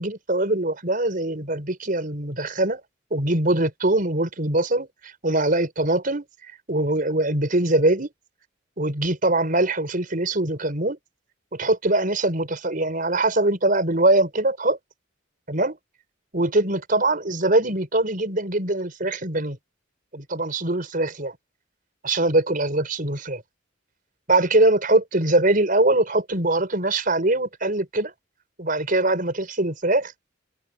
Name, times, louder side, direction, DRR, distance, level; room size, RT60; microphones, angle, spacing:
voice 1, 0.0-2.8 3.1-6.2 6.7-8.1 8.8-11.0 11.5-14.8 15.5-15.8 16.3-19.6 20.1-21.4 22.0-23.4 24.3-28.1 28.6-30.1, right 2 dB, 45° right, 5.4 m, -22 dB
head